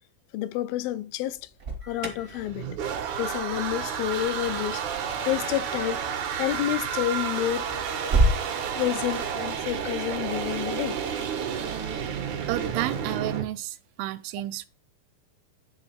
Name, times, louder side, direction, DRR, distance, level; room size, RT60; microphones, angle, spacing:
voice 1, 0.3-1.4 1.8-2.7 3.2-4.8 5.3-6.0 6.3-7.7 8.8-11.0 12.2-12.3, left 13 dB, 80° left, 2.2 m, -29 dB
Alarm, 1.3-8.4, right 2 dB, 40° right, 1.3 m, -31 dB
sound 1, 2.2-13.4, right 7 dB, 65° right, 2.3 m, -31 dB
voice 2, 12.5-14.7, right 16 dB, 85° right, 2.3 m, -31 dB
9.8 x 3.8 x 5.7 m
omnidirectional pair, 4.3 m